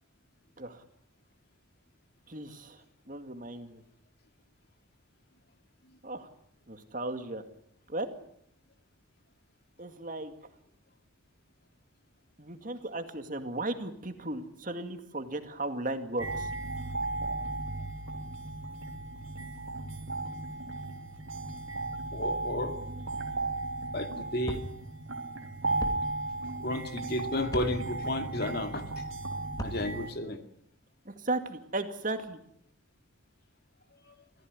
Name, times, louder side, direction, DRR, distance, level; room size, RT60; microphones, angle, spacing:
voice 1, 2.3-3.8 6.0-6.3 6.7-7.4 7.9-8.1 9.8-10.3 12.4-16.5 31.1-32.4, right 2 dB, 40° right, 7 dB, 2.2 m, -36 dB
sound 1, 16.2-30.1, right 2 dB, 80° right, 3.0 m, -35 dB
voice 2, 22.1-22.7 23.9-24.6 26.6-29.1 29.6-30.4 33.9-34.1, left 1 dB, 50° left, 7 dB, 2.3 m, -33 dB
sound 2, 24.4-24.7 25.8-26.0 27.5-27.7 29.5-29.8, equal, 20° left, 2.6 m, -36 dB
25.5 x 16.0 x 9.6 m, 0.72 s
head